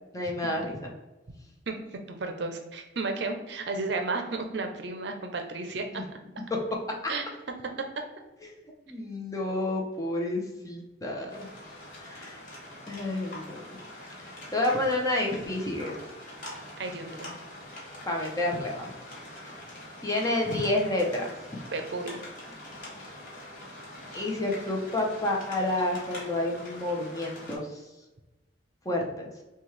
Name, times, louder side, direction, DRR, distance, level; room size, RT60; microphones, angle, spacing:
voice 1, 0.1-0.9 5.9-6.0 8.4-8.5 8.9-11.5 12.0-12.4 12.9-13.8 14.3-16.0 18.1-18.9 20.0-21.3 24.1-27.8 28.8-29.3, left 1 dB, 20° left, -1 dB, 0.7 m, -30 dB
voice 2, 1.7-6.0 7.1-7.2 16.8-17.3 21.7-22.2, right 3 dB, 65° right, 4 dB, 0.6 m, -33 dB
sound 1, 11.3-27.6, left 1 dB, 45° left, 1.3 m, -44 dB
5.9 x 2.4 x 3.2 m, 1.1 s
head